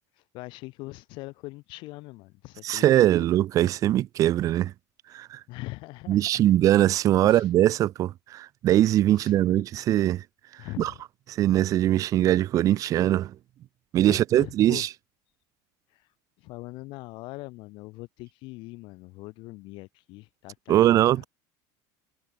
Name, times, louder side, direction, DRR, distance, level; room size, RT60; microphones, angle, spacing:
voice 1, 0.3-3.1 5.5-6.2 7.2-7.5 9.2-9.4 10.6-11.0 14.1-14.9 15.9-16.0 16.4-21.3, left 22 dB, 60° left, 1.1 m, -41 dB
voice 2, 2.6-4.7 5.1-5.4 6.1-10.2 10.8-10.9 11.3-13.3 13.9-14.9 20.7-21.2, right 13 dB, 40° right, 0.4 m, -21 dB
supercardioid pair, 135°, 9 cm